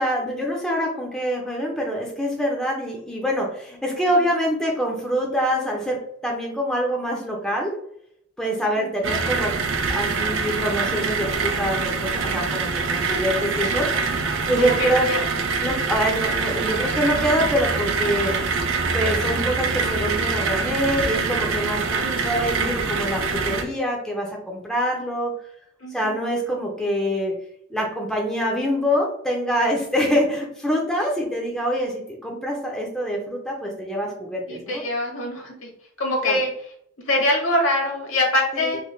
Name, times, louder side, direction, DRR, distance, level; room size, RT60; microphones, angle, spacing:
voice 1, 0.0-7.8 8.4-9.6 9.9-14.2 14.5-15.1 15.6-18.3 18.9-25.4 25.9-27.4 27.7-34.8 36.2-36.4 38.5-38.8, equal, 5° left, -2 dB, 0.6 m, -25 dB
sound 1, 9.0-23.6, right 4 dB, 75° right, 0.5 m, -24 dB
voice 2, 14.6-15.2 22.0-22.3 25.8-26.2 34.5-35.7 36.0-36.5 37.1-38.8, left 1 dB, 80° left, 0 dB, 1.2 m, -24 dB
3.4 x 3.2 x 2.4 m, 0.70 s
head